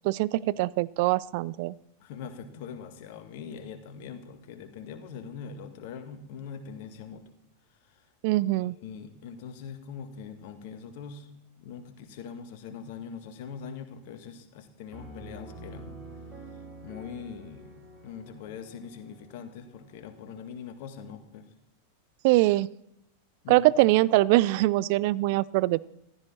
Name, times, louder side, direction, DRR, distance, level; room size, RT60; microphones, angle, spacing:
voice 1, 0.0-1.7 8.2-8.8 22.2-22.7 23.5-25.8, right 18 dB, 50° right, 22 dB, 0.4 m, -23 dB
voice 2, 2.0-7.2 7.7-8.1 8.5-11.3 11.6-16.0 16.4-17.7 18.0-21.5 23.4-23.7, left 6 dB, 50° left, 8 dB, 1.7 m, -42 dB
Piano, 14.9-20.5, right 2 dB, 20° right, 3.6 m, -47 dB
15.0 x 12.5 x 4.3 m, 0.81 s
figure-of-eight pair, 90°, 0 cm